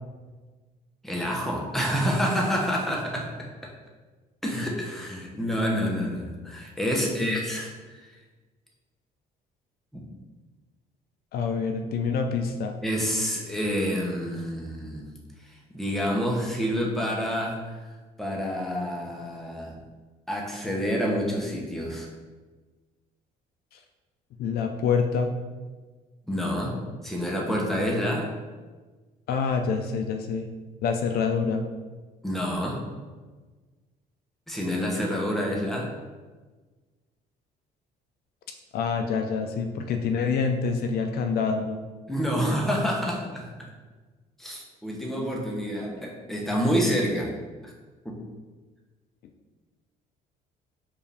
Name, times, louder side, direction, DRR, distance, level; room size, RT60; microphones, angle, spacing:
voice 1, 1.0-3.7 4.4-7.7 8.0-8.1 9.9-10.1 12.8-15.1 15.7-17.8 18.2-19.7 20.3-22.1 26.3-28.3 32.2-32.8 34.5-35.9 42.1-43.7 44.4-47.3 47.6-47.7 48.0-48.2, equal, ahead, -2 dB, 0.8 m, -28 dB
voice 2, 7.0-7.4 11.3-12.8 23.7-23.8 24.4-25.3 29.3-30.5 30.8-31.6 38.7-41.8, left 5 dB, 65° left, 5 dB, 0.4 m, -26 dB
4.7 x 2.5 x 3.3 m, 1.3 s
cardioid pair, 110°, 17 cm